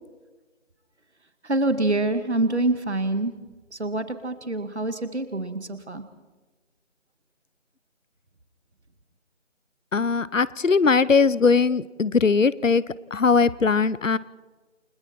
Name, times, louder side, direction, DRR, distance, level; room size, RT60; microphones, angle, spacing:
voice 1, 1.5-3.3 3.8-6.0, right 2 dB, 60° right, 9 dB, 2.2 m, -25 dB
voice 2, 9.9-12.8 13.1-14.2, left 5 dB, 80° left, 19 dB, 0.9 m, -20 dB
29.0 x 20.5 x 4.4 m, 1.3 s
figure-of-eight pair, 175°, 38 cm